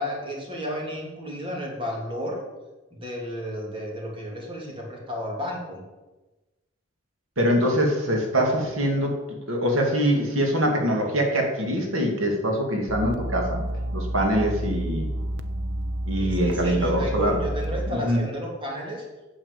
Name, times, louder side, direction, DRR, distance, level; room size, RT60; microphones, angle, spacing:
voice 1, 0.0-2.4 2.9-5.8 16.2-19.1, equal, 25° right, -1 dB, 2.9 m, -32 dB
voice 2, 7.4-9.2 9.5-13.6 13.9-15.1 16.0-17.4 17.9-18.2, equal, 85° right, 1 dB, 2.4 m, -23 dB
sound 1, 12.9-17.9, right 1 dB, 65° right, 0.8 m, -30 dB
9.0 x 7.8 x 8.2 m, 1.1 s
head